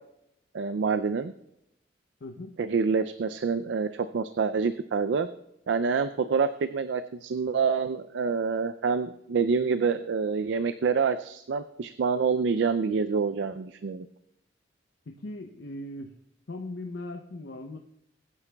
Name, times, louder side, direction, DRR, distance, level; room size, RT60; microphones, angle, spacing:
voice 1, 0.5-1.3 2.6-5.3 5.7-14.1, right 5 dB, 70° right, 11 dB, 0.4 m, -27 dB
voice 2, 2.2-2.6 15.1-16.1 16.5-17.8, left 2 dB, 70° left, 3 dB, 0.7 m, -39 dB
21.5 x 9.7 x 2.3 m, 0.81 s
head